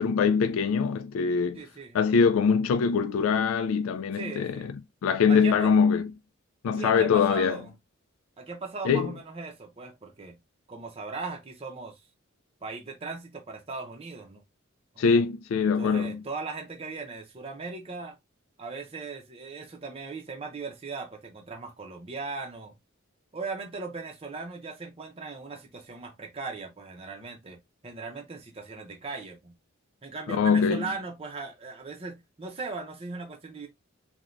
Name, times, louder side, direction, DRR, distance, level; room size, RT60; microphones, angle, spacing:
voice 1, 0.0-1.6 1.9-4.7 5.0-6.1 6.6-7.6 8.8-9.1 15.0-16.2 30.3-30.8, left 6 dB, 80° left, 0.3 m, -23 dB
voice 2, 1.5-2.0 4.1-4.7 5.3-5.8 6.8-7.7 8.4-10.4 10.7-12.0 12.6-14.4 14.9-15.0 15.6-18.2 18.6-22.7 23.3-29.5 30.0-33.7, right 4 dB, 30° right, 0.6 m, -38 dB
3.1 x 2.2 x 2.5 m
head